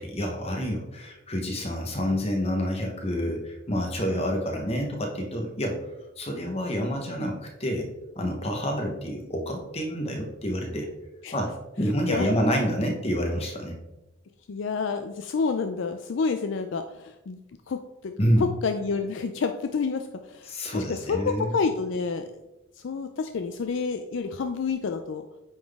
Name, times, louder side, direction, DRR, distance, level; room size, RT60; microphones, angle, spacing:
voice 1, 0.0-5.8 6.2-7.9 8.2-10.9 11.3-13.8 18.2-18.5 20.5-21.5, equal, 30° left, 2 dB, 1.1 m, -28 dB
voice 2, 14.5-17.4 17.7-18.1 18.4-22.3 22.8-25.2, left 5 dB, 60° left, 7 dB, 0.4 m, -29 dB
8.9 x 3.9 x 3.5 m, 0.96 s
head